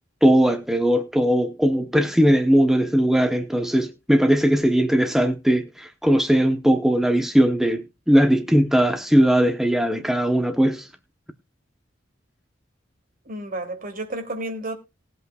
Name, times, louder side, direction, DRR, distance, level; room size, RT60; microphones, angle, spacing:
voice 1, 0.2-10.9, equal, ahead, 0.8 m, -19 dB
voice 2, 13.3-14.7, right 1 dB, 45° right, 2.7 m, -31 dB
19.5 x 8.2 x 2.3 m
head